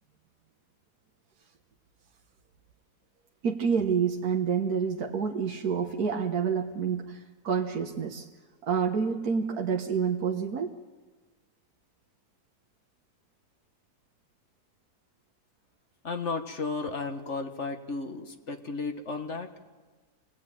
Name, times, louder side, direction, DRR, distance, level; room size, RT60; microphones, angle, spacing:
voice 1, 3.4-7.2 7.4-8.3 8.6-10.7, right 6 dB, 70° right, 2 dB, 1.8 m, -28 dB
voice 2, 16.0-19.5, left 4 dB, 50° left, 5 dB, 1.8 m, -34 dB
25.5 x 18.0 x 9.2 m, 1.3 s
omnidirectional pair, 1.7 m